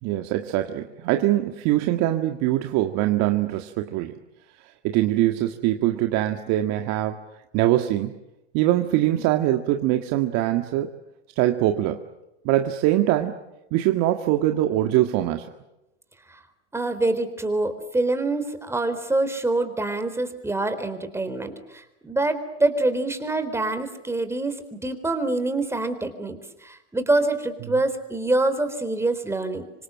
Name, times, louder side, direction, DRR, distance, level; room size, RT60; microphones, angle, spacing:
voice 1, 0.0-4.2 4.8-7.3 7.5-8.2 8.5-10.9 11.4-12.0 12.5-13.4 13.7-15.5, right 14 dB, 50° right, 6 dB, 1.9 m, -23 dB
voice 2, 16.7-29.7, right 2 dB, 10° right, 9 dB, 4.1 m, -25 dB
26.5 x 25.5 x 7.7 m, 0.94 s
hypercardioid pair, 115°, 33 cm